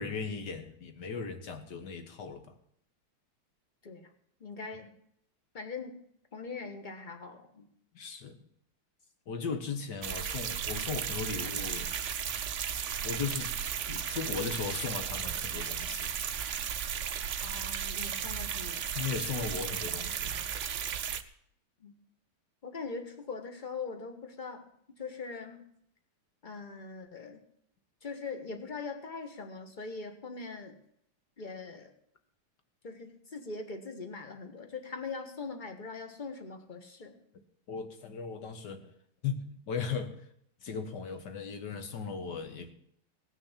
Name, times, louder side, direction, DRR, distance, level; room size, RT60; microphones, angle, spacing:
voice 1, 0.0-2.5 7.9-8.4 9.3-11.9 13.0-16.1 18.9-20.5 37.7-38.9 39.2-40.2 40.6-42.7, left 5 dB, 55° left, 7 dB, 1.9 m, -37 dB
voice 2, 4.4-4.9 5.5-6.0 6.3-7.7 17.4-18.9 21.8-21.9 22.6-24.7 25.0-25.6 26.4-27.4 28.0-30.8 31.4-31.9 32.8-37.1, left 4 dB, 25° left, 6 dB, 1.3 m, -41 dB
sound 1, 10.0-21.2, right 8 dB, 65° right, 0.7 m, -35 dB
17.5 x 6.4 x 7.4 m, 0.70 s
omnidirectional pair, 2.3 m